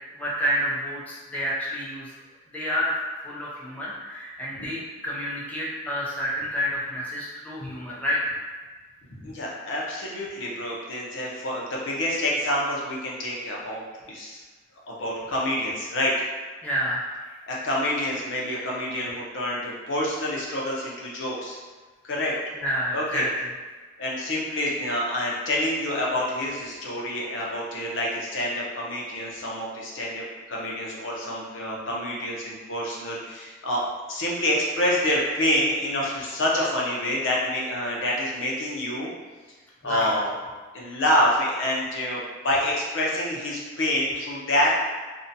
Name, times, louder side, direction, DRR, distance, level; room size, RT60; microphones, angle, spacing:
voice 1, 0.2-2.1 2.5-2.9 3.2-8.2 16.6-17.2 22.5-23.3 39.8-40.1, equal, 10° left, -7 dB, 0.4 m, -29 dB
voice 2, 9.2-13.8 14.1-14.4 14.9-16.1 17.5-21.6 22.0-22.3 22.9-23.2 24.0-39.1 39.8-40.3 40.7-44.7, left 1 dB, 75° left, -4 dB, 0.6 m, -27 dB
2.6 x 2.1 x 2.6 m, 1.4 s
head